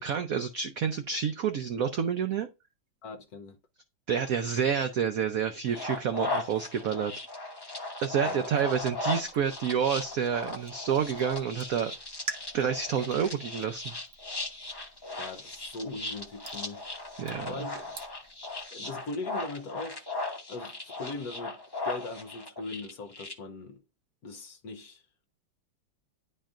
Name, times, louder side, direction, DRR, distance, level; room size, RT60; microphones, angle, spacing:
voice 1, 0.0-2.5 4.1-7.1 8.0-11.9 12.5-13.9 17.2-17.5, right 7 dB, 80° right, 0.7 m, -29 dB
voice 2, 3.0-3.6 8.2-8.5 15.2-16.9 17.4-17.9 18.7-20.0 20.5-21.6 21.8-23.8 24.2-25.0, left 3 dB, 60° left, 1.2 m, -40 dB
sound 1, 5.7-23.3, left 2 dB, 25° left, 0.5 m, -37 dB
sound 2, 8.7-18.6, right 4 dB, 45° right, 1.0 m, -48 dB
10.0 x 4.4 x 2.5 m
omnidirectional pair, 2.2 m